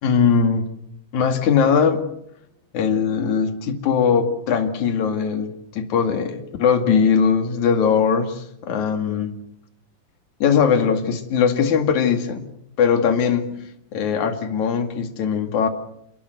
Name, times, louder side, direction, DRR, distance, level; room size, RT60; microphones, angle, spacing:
voice 1, 0.0-0.7 1.1-2.0 2.7-9.3 10.4-12.4 12.8-15.7, left 6 dB, 50° left, 6 dB, 3.2 m, -20 dB
28.5 x 21.0 x 8.1 m, 0.77 s
omnidirectional pair, 4.9 m